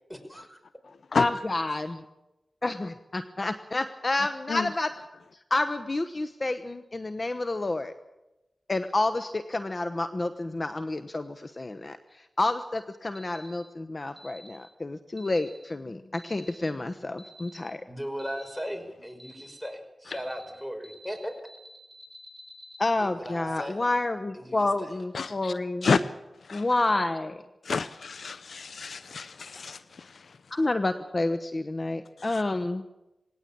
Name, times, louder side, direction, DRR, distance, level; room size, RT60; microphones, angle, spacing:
voice 1, 0.1-0.6 17.9-21.3 23.0-23.8 24.3-24.9, equal, 5° left, 7 dB, 5.4 m, -37 dB
voice 2, 1.1-2.0 2.6-4.9 5.5-7.9 8.7-17.8 22.8-25.9 26.5-27.4 30.5-32.8, left 2 dB, 45° left, 10 dB, 1.1 m, -29 dB
sound 1, 13.2-13.5 14.2-14.5 15.2-15.5 16.2-16.5 17.2-17.5 18.2-18.5 19.2-19.5 20.1-20.4 20.8-21.2 21.5-22.9, left 1 dB, 10° right, 6.3 m, -49 dB
voice 3, 25.1-25.5 25.8-26.0 26.5-26.6 27.6-30.2 32.3-32.4, left 5 dB, 75° left, 15 dB, 0.7 m, -29 dB
19.0 x 18.0 x 8.7 m, 0.97 s
cardioid pair, 40°, 0 cm